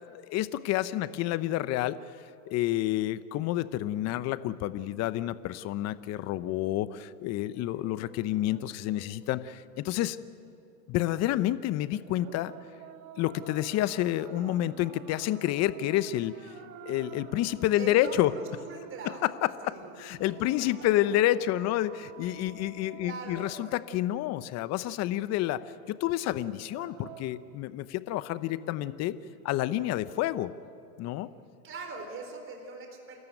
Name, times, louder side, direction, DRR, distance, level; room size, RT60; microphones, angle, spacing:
voice 1, 0.1-2.0 2.4-10.2 10.9-12.5 13.2-16.3 16.8-18.3 19.0-25.6 25.9-29.1 29.4-30.5 31.0-31.3, left 14 dB, 35° left, 15 dB, 0.9 m, -29 dB
voice 2, 0.8-1.2 17.8-19.2 19.6-19.8 20.6-20.7 23.0-23.6 31.6-33.2, right 4 dB, 25° right, 3 dB, 4.0 m, -41 dB
sound 1, 7.6-10.1 11.9-24.2 26.4-27.2, right 9 dB, 45° right, 2.0 m, -50 dB
29.5 x 13.5 x 9.2 m, 2.5 s
hypercardioid pair, 120°, 45 cm